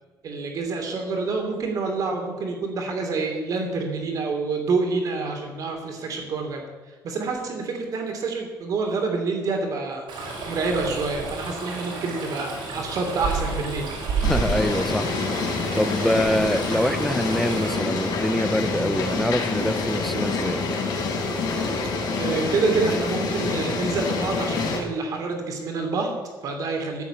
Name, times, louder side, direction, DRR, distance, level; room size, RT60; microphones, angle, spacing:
voice 1, 0.2-10.1 10.5-13.9 22.2-27.0, right 3 dB, 50° right, 3 dB, 2.8 m, -27 dB
Stream, 10.1-17.8, right 4 dB, 75° right, 4.7 m, -31 dB
sound 1, 14.2-24.8, left 3 dB, 60° left, 3.7 m, -27 dB
voice 2, 14.2-15.1 15.8-20.6, equal, ahead, 13 dB, 0.4 m, -25 dB
14.5 x 7.3 x 8.7 m, 1.4 s
cardioid pair, 175°, 8 cm